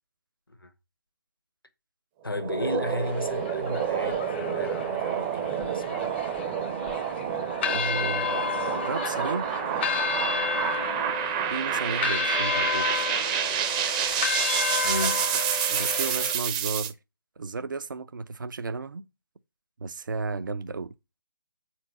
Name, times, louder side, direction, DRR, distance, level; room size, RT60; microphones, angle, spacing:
voice 1, 2.2-6.1 14.8-15.2, left 2 dB, 80° left, 1.4 m, -34 dB
sound 1, 2.3-16.9, right 9 dB, 20° right, 0.6 m, -28 dB
sound 2, 2.6-16.3, left 7 dB, 30° left, 0.7 m, -32 dB
voice 2, 7.6-9.6 11.5-13.1 15.6-17.0 17.4-19.1 19.8-20.9, right 4 dB, 60° right, 0.6 m, -34 dB
7.7 x 4.5 x 5.2 m
figure-of-eight pair, 145°, 12 cm